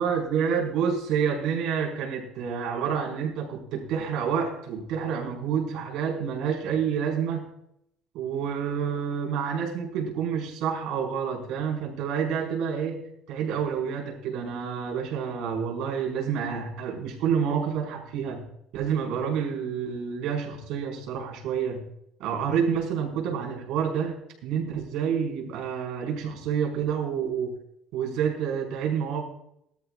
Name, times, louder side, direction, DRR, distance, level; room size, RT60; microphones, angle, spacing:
voice 1, 0.0-7.5 8.1-13.0 13.3-18.4 18.7-21.8 22.2-24.1 24.4-27.5 27.9-29.2, right 7 dB, 70° right, 1 dB, 5.2 m, -28 dB
20.0 x 13.5 x 2.5 m, 0.75 s
cardioid pair, 170°, 0 cm